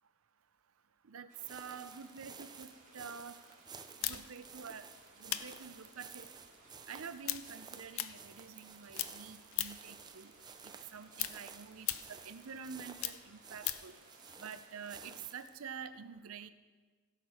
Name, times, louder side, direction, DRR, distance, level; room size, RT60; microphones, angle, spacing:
voice 1, 1.0-3.4 4.0-4.9 5.2-6.3 6.9-10.3 10.6-13.9 14.4-16.5, right 6 dB, 70° right, 12 dB, 0.6 m, -48 dB
sound 1, 1.3-15.3, right 2 dB, 35° right, 2.4 m, -62 dB
sound 2, 1.4-15.6, right 6 dB, 20° right, 0.5 m, -53 dB
sound 3, 4.0-8.7 8.9-10.0 10.3-14.0, left 13 dB, 65° left, 0.5 m, -40 dB
16.5 x 6.6 x 4.4 m, 1.4 s
head